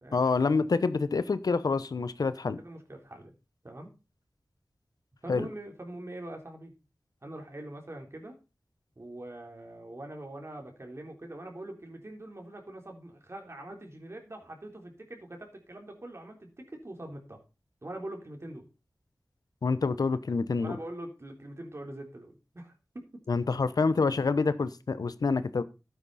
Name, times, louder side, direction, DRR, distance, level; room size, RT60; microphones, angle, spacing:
voice 1, 0.1-2.6 5.3-5.5 19.6-20.8 23.3-25.6, left 4 dB, 80° left, 14 dB, 0.9 m, -27 dB
voice 2, 2.6-3.3 3.6-3.9 5.2-6.7 7.2-8.4 9.0-17.4 17.8-18.7 20.6-23.2, right 1 dB, 45° right, 2 dB, 3.8 m, -43 dB
12.5 x 9.6 x 4.2 m, 0.30 s
cardioid pair, 45°, 6 cm